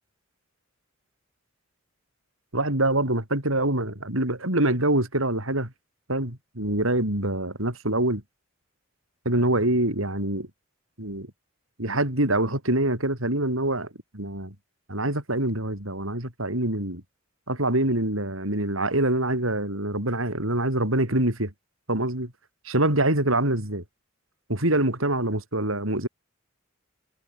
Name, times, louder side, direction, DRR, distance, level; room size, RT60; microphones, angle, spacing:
voice 1, 2.5-5.7 6.1-8.2 9.3-10.5 11.0-11.3 11.8-13.9 14.1-14.5 14.9-17.0 17.5-21.5 21.9-22.3 22.7-23.8 24.5-26.1, right 1 dB, 80° right, 7.4 m, -25 dB
head